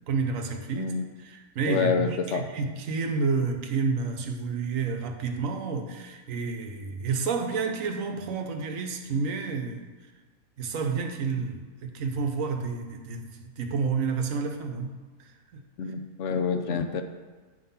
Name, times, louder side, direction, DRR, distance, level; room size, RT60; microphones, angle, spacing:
voice 1, 0.1-9.8 10.6-15.6, right 4 dB, 65° right, 5 dB, 1.2 m, -30 dB
voice 2, 0.8-1.1 1.6-2.4 15.8-17.0, left 6 dB, 65° left, 6 dB, 0.8 m, -27 dB
9.9 x 3.8 x 5.6 m, 1.4 s
omnidirectional pair, 1.6 m